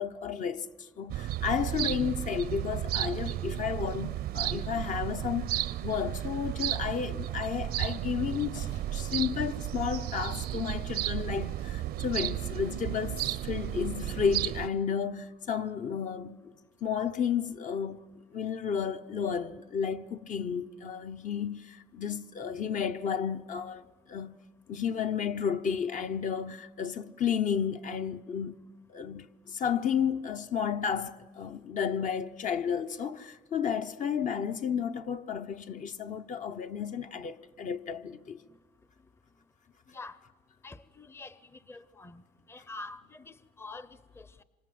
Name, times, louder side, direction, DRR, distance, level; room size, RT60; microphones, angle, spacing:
voice 1, 0.0-16.5 16.8-24.4 24.7-28.6 28.9-38.4, left 7 dB, 50° left, 1.0 m, -32 dB
sound 1, 1.1-14.7, right 13 dB, 65° right, 0.7 m, -33 dB
Dog, 8.4-13.8, left 4 dB, 90° left, 7.1 m, -61 dB
voice 2, 39.9-40.2 40.6-42.2 42.5-44.4, left 3 dB, 15° left, 0.7 m, -46 dB
27.0 x 26.0 x 7.7 m
cardioid pair, 110°, 17 cm